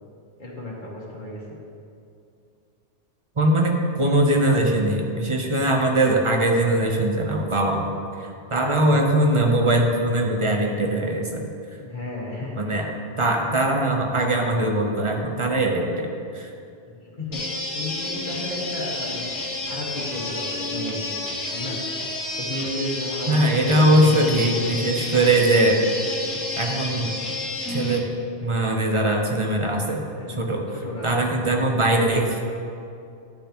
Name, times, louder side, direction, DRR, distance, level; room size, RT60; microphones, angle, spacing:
voice 1, 0.4-1.4 5.9-6.2 8.8-9.0 11.8-12.6 16.9-19.3 19.7-21.1 21.5-21.8 22.4-24.8 30.1-31.1, left 1 dB, 45° left, -5 dB, 1.8 m, -33 dB
voice 2, 3.4-7.9 8.2-11.5 12.6-12.9 13.2-16.5 23.3-25.8 26.6-27.2 27.7-28.1 28.4-30.1 30.4-30.7 31.0-32.4, right 1 dB, 30° right, 1 dB, 0.7 m, -21 dB
sound 1, 17.3-28.0, left 2 dB, 80° left, 1.4 m, -30 dB
11.5 x 6.8 x 2.9 m, 2.6 s
omnidirectional pair, 1.2 m